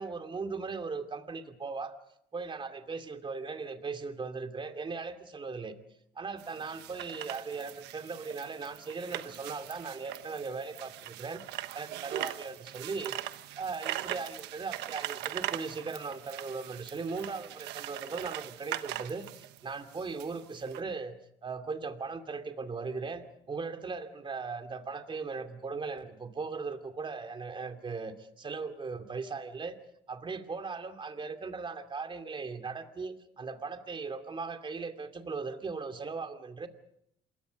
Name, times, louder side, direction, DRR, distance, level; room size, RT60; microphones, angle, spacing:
voice 1, 0.0-1.9 2.3-5.8 6.2-13.2 13.6-21.1 21.4-29.8 30.1-36.7, right 4 dB, 30° right, 7 dB, 2.6 m, -38 dB
sound 1, 6.4-20.8, right 15 dB, 90° right, 1.2 m, -41 dB
27.5 x 22.5 x 5.4 m, 0.75 s
cardioid pair, 110°, 17 cm